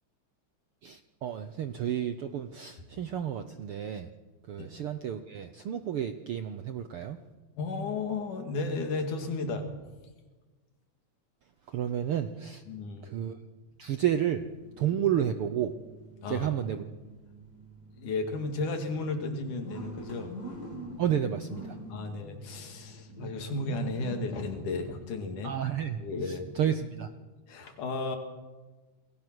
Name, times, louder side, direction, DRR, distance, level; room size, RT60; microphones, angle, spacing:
voice 1, 0.8-4.1 4.5-7.2 11.7-12.6 13.0-13.4 13.8-14.4 14.8-15.7 16.3-16.8 21.0-21.8 25.4-26.0 26.3-27.1, right 10 dB, 65° right, 9 dB, 1.4 m, -31 dB
voice 2, 7.6-9.7 12.7-13.1 16.2-16.7 18.0-20.3 21.9-25.6 26.0-26.5 27.5-28.2, left 3 dB, 90° left, 5 dB, 3.8 m, -34 dB
sound 1, 13.7-27.1, equal, 30° left, 5.3 m, -46 dB
28.5 x 20.5 x 6.3 m, 1.3 s
omnidirectional pair, 3.5 m